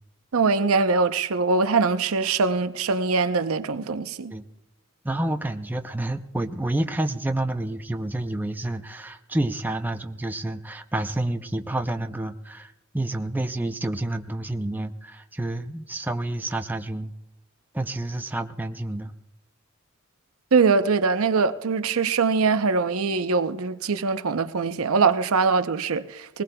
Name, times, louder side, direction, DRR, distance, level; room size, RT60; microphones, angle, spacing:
voice 1, 0.3-4.3 20.5-26.4, right 4 dB, 80° right, 0.6 m, -22 dB
voice 2, 5.0-17.1 17.7-19.1, right 1 dB, 10° right, 0.5 m, -29 dB
20.5 x 19.5 x 2.3 m
head